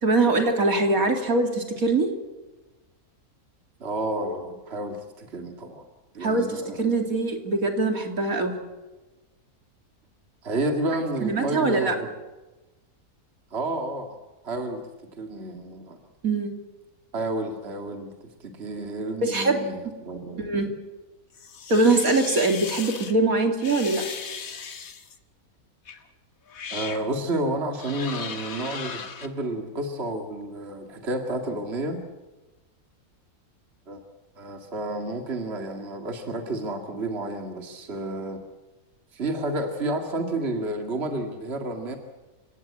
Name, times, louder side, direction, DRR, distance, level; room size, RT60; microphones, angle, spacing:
voice 1, 0.0-2.1 4.2-4.3 6.2-8.6 11.2-11.9 16.2-16.5 19.2-19.7 20.4-20.7 21.7-24.0, right 2 dB, 65° right, 4 dB, 3.1 m, -23 dB
voice 2, 3.8-5.9 6.1-6.8 10.4-12.1 13.5-14.2 14.4-14.8 15.1-16.0 17.1-20.5 26.7-32.0 33.9-34.0 34.4-38.4 39.1-42.0, right 1 dB, 45° right, 4 dB, 2.3 m, -30 dB
sound 1, 21.3-23.1 23.6-25.2 25.9-26.0 26.5-27.1 27.8-29.3, left 6 dB, 65° left, 1.9 m, -37 dB
29.0 x 17.5 x 8.7 m, 1.2 s
omnidirectional pair, 1.6 m